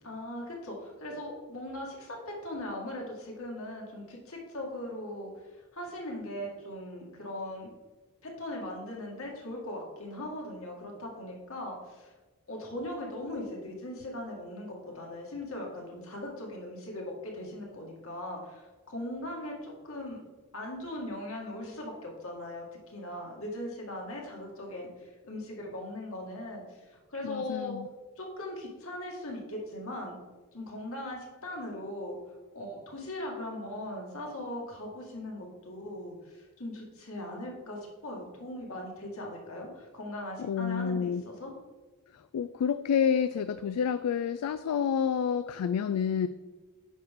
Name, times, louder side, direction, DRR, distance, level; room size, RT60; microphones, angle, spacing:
voice 1, 0.0-5.3 5.7-7.7 8.2-12.1 12.5-20.2 20.5-26.6 26.9-27.8 28.2-30.1 30.5-32.2 32.5-41.5, left 1 dB, 65° left, -1 dB, 1.9 m, -39 dB
voice 2, 27.2-27.9 40.4-41.2 42.3-46.3, left 7 dB, 80° left, 12 dB, 0.3 m, -29 dB
9.3 x 6.2 x 3.6 m, 1.2 s
head